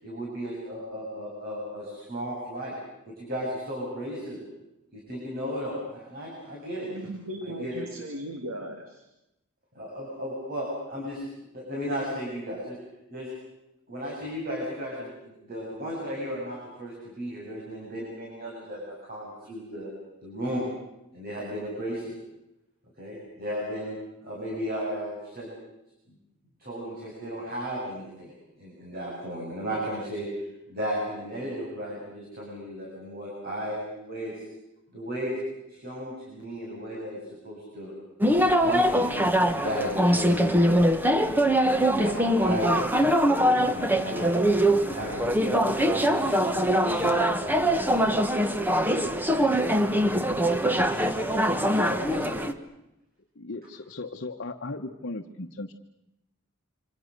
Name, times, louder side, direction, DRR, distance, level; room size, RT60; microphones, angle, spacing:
voice 1, 0.0-2.7 3.1-4.4 4.9-6.9 7.4-7.8 9.8-11.2 11.5-12.8 13.1-13.3 13.9-15.1 15.4-19.9 20.2-20.7 21.1-22.1 23.0-24.0 24.2-25.5 26.6-28.3 28.6-30.3 30.7-34.4 34.9-35.3 35.7-37.9 38.6-39.2 39.5-40.9 41.5-44.3 44.7-47.2 50.6-51.1 51.7-52.3, equal, 45° right, -3 dB, 7.3 m, -35 dB
voice 2, 6.8-9.0, right 1 dB, 80° right, 5 dB, 2.5 m, -37 dB
sound 1, 38.2-52.5, equal, 10° right, 1.3 m, -23 dB
voice 3, 53.4-55.7, left 2 dB, 55° left, 3 dB, 1.1 m, -37 dB
27.0 x 26.0 x 6.7 m, 0.89 s
head